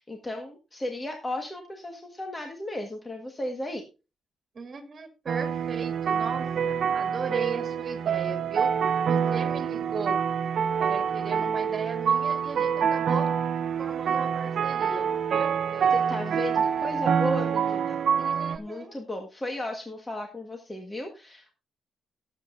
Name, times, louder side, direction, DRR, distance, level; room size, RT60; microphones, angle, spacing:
voice 1, 0.0-3.8 15.9-18.0 18.6-21.5, left 1 dB, 15° left, 3 dB, 1.5 m, -34 dB
voice 2, 4.5-8.7 9.0-10.2 10.8-13.3 13.8-16.2 18.1-19.0, right 4 dB, 35° right, 6 dB, 2.4 m, -37 dB
sound 1, 5.3-18.6, right 7 dB, 60° right, 0.6 m, -26 dB
18.0 x 7.8 x 2.6 m, 0.29 s
cardioid pair, 135°, 0 cm